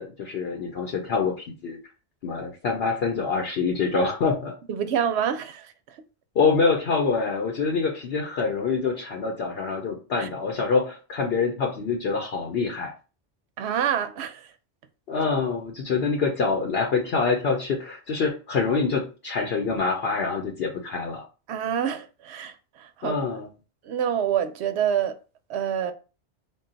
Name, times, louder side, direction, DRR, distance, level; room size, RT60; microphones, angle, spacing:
voice 1, 0.0-1.8 2.2-4.5 6.4-12.9 15.1-21.2 23.0-23.5, left 4 dB, 65° left, 0.9 m, -25 dB
voice 2, 4.7-6.0 10.2-10.3 13.6-14.5 21.5-23.2 23.8-25.2 25.5-25.9, right 9 dB, 75° right, 0.8 m, -27 dB
3.8 x 2.3 x 3.8 m
omnidirectional pair, 1.2 m